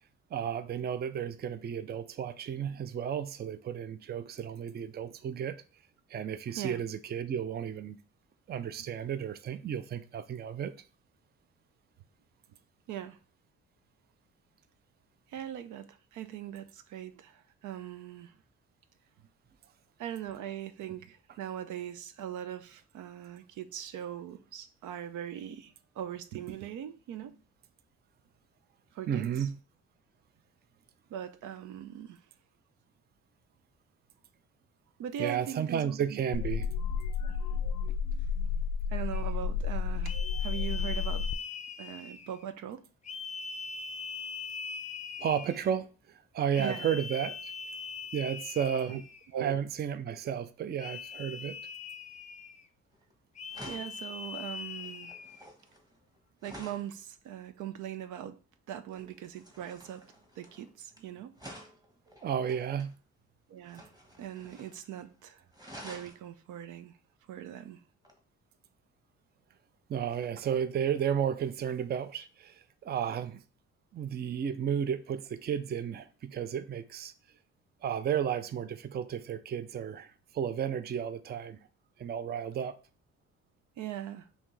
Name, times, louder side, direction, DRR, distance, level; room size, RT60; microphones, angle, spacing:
voice 1, 0.3-5.6 6.1-8.0 8.5-10.7 29.1-29.6 35.2-36.7 45.2-47.5 48.1-49.0 49.4-51.6 62.2-62.9 69.9-73.4 73.9-77.1 77.8-81.6 82.0-82.8, right 8 dB, 35° right, 0.4 m, -33 dB
voice 2, 12.9-13.2 15.3-18.3 20.0-27.4 28.9-29.5 31.1-32.2 35.0-36.2 37.2-37.4 38.9-41.3 41.8-42.8 46.6-46.8 48.9-49.0 49.3-49.6 50.1-50.2 53.7-55.1 56.4-58.4 58.7-60.1 60.4-61.4 63.5-63.9 64.2-65.4 65.8-67.0 67.3-67.8 83.8-84.3, right 10 dB, 80° right, 0.6 m, -40 dB
sound 1, 36.3-41.3, left 6 dB, 75° left, 0.5 m, -31 dB
sound 2, 39.1-39.4 40.0-42.4 43.0-45.8 46.5-49.3 50.8-52.7 53.3-55.4, left 5 dB, 25° left, 0.5 m, -41 dB
sound 3, 52.9-53.1 53.5-56.9 58.9-61.0 61.4-62.9 63.6-64.8 65.1-65.2 65.5-66.2 68.1-68.2, equal, 15° right, 1.2 m, -50 dB
5.6 x 2.7 x 3.2 m
cardioid pair, 90°, 30 cm